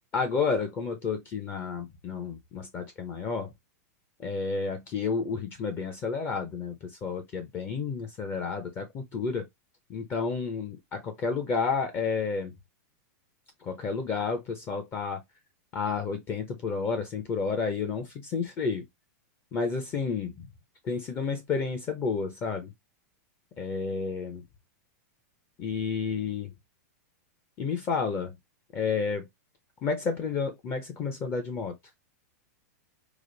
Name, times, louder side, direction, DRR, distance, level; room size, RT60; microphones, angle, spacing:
voice 1, 0.1-3.5 4.2-9.5 9.9-12.5 13.6-15.2 15.7-18.9 19.5-20.4 20.8-22.7 23.6-24.4 25.6-26.5 27.6-28.3 28.7-29.3 29.8-31.7, left 5 dB, 25° left, 0.6 m, -31 dB
4.8 x 2.0 x 3.8 m
supercardioid pair, 160°, 9 cm